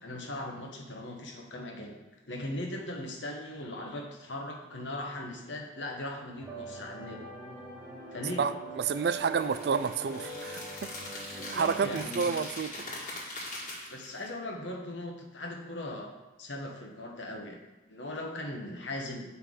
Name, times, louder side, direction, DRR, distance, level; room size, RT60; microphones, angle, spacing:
voice 1, 0.0-2.0 2.3-7.2 8.1-8.4 11.3-12.3 13.9-16.1 16.4-17.6 17.9-19.3, left 1 dB, 75° left, 1 dB, 1.2 m, -39 dB
sound 1, 6.4-12.0, right 2 dB, 5° right, 1.2 m, -43 dB
voice 2, 8.4-10.9 11.5-12.9, right 6 dB, 55° right, 12 dB, 0.3 m, -30 dB
sound 2, 8.8-14.3, left 1 dB, 40° left, 1.8 m, -42 dB
8.1 x 5.6 x 3.8 m, 1.1 s
head